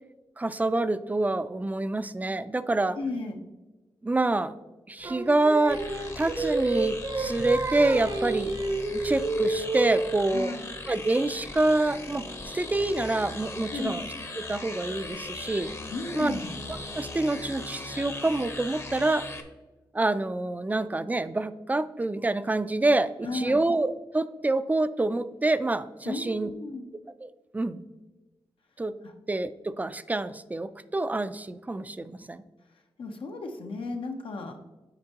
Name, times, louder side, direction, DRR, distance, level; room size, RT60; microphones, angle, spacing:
voice 1, 0.4-3.0 4.0-4.5 4.9-5.8 6.2-8.5 8.9-10.5 10.9-12.3 12.5-14.1 14.4-15.7 16.1-16.3 16.7-19.2 19.9-26.5 27.2-27.8 28.8-28.9 29.3-32.4, right 2 dB, 20° right, 13 dB, 0.4 m, -27 dB
voice 2, 2.9-3.4 10.3-10.7 13.7-14.0 15.9-16.5 23.2-23.6 26.0-26.8 29.0-29.1 33.0-34.6, left 3 dB, 75° left, 3 dB, 0.7 m, -34 dB
Singing, 5.0-10.2, right 2 dB, 40° right, 0.7 m, -30 dB
sound 1, 5.7-19.4, left 2 dB, 30° left, 0.8 m, -39 dB
9.7 x 4.4 x 2.9 m, 1.2 s
cardioid pair, 80°, 9 cm